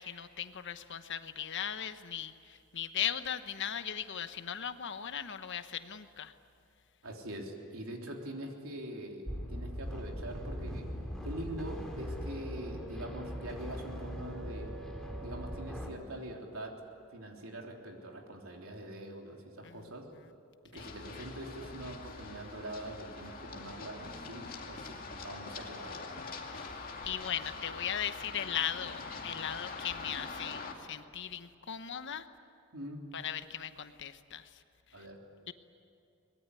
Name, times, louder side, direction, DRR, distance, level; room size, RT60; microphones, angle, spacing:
voice 1, 0.0-6.3 19.6-19.9 20.7-20.9 26.5-26.7 27.0-32.3 33.1-34.5 35.5-35.6, left 9 dB, 60° left, 11 dB, 1.0 m, -38 dB
voice 2, 7.0-10.9 11.2-14.7 15.2-16.8 17.1-20.1 20.7-26.1 32.7-33.0 34.9-35.2, right 1 dB, 75° right, 1 dB, 3.5 m, -44 dB
sound 1, 9.3-15.9, equal, 5° left, 2.9 m, -40 dB
Run, 20.8-30.7, left 4 dB, 45° left, 2.4 m, -44 dB
23.5 x 20.5 x 9.8 m, 2.6 s
head